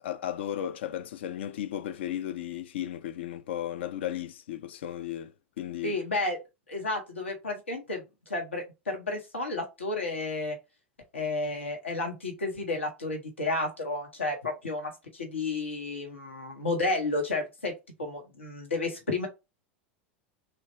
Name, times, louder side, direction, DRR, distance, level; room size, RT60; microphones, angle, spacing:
voice 1, 0.0-6.0, left 11 dB, 70° left, 0.4 m, -35 dB
voice 2, 5.8-6.4 6.7-10.6 11.1-17.7 18.0-19.3, left 2 dB, 85° left, 1.0 m, -32 dB
3.3 x 2.8 x 2.8 m
hypercardioid pair, 90°, 6 cm